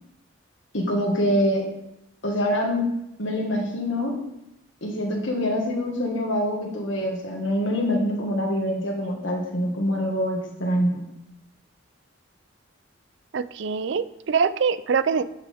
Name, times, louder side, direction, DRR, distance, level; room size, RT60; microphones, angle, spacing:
voice 1, 0.7-1.7 2.2-2.9 3.2-4.2 4.8-11.1, equal, 65° left, 1 dB, 1.7 m, -25 dB
voice 2, 13.3-15.2, right 6 dB, 60° right, 15 dB, 0.4 m, -24 dB
10.5 x 6.0 x 3.5 m, 0.86 s
head